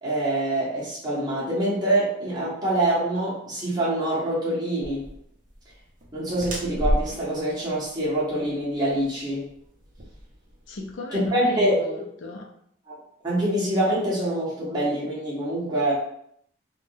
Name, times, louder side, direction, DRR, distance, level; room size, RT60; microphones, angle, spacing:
voice 1, 0.0-5.1 6.1-9.5 11.1-12.0 12.9-13.0 13.2-15.9, right 1 dB, 20° right, -8 dB, 1.0 m, -25 dB
sound 1, 4.8-10.9, equal, 40° right, 0.6 m, -32 dB
voice 2, 10.7-12.5, left 1 dB, 75° left, 2 dB, 0.5 m, -34 dB
3.5 x 2.3 x 2.6 m, 0.70 s
head